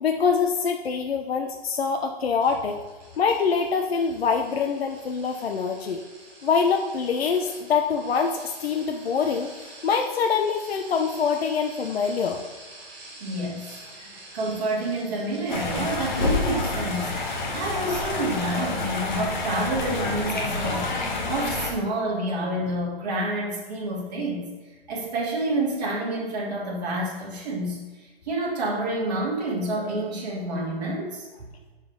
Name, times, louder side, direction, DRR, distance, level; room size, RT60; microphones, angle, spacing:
voice 1, 0.0-2.8 3.2-6.0 6.4-12.4, left 6 dB, 75° left, 4 dB, 0.9 m, -25 dB
sound 1, 2.4-18.9 19.1-19.4 19.8-19.9, right 2 dB, 15° right, 1.6 m, -47 dB
voice 2, 13.2-20.9 21.3-24.5 24.9-31.3, right 1 dB, 40° right, -6 dB, 3.0 m, -28 dB
sound 2, 15.5-21.7, left 3 dB, 45° left, 1.6 m, -28 dB
7.2 x 6.8 x 5.2 m, 1.3 s
hypercardioid pair, 175°, 31 cm